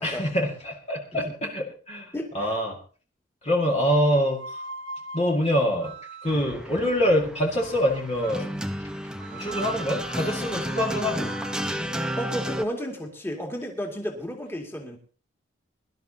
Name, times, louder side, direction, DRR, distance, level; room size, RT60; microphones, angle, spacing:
voice 1, 0.0-2.8 3.4-4.6 5.1-6.0 6.2-8.6 9.3-11.3, equal, 35° left, 0 dB, 2.1 m, -25 dB
voice 2, 2.1-2.5 12.2-15.0, equal, 10° left, 1 dB, 2.3 m, -33 dB
sound 1, 3.8-6.7 7.5-8.6 9.2-13.2, right 2 dB, 75° right, 1.5 m, -41 dB
sound 2, 6.3-12.6, equal, 5° right, 0.8 m, -32 dB
22.5 x 12.0 x 2.9 m, 0.39 s
head